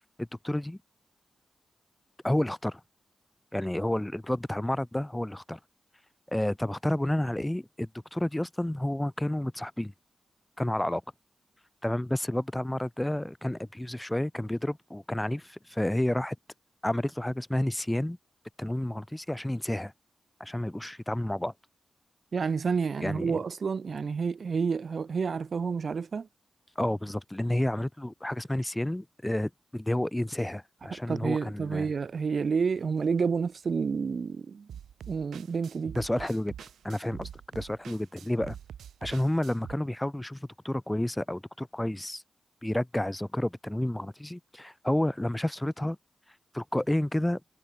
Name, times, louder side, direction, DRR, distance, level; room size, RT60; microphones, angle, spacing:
voice 1, 0.2-0.8 2.2-2.8 3.5-5.6 6.3-9.9 10.6-11.0 11.8-16.4 16.8-18.2 18.6-19.9 20.4-21.5 23.0-23.4 26.8-31.9 35.9-36.5 36.8-38.6 39.0-42.2 42.6-46.0 46.5-47.4, left 1 dB, 15° left, 2.4 m, -30 dB
voice 2, 22.3-26.3 30.9-34.7 35.1-36.0, right 5 dB, 65° right, 0.7 m, -29 dB
sound 1, 34.7-39.8, right 9 dB, 85° right, 2.7 m, -45 dB
supercardioid pair, 45°, 0 cm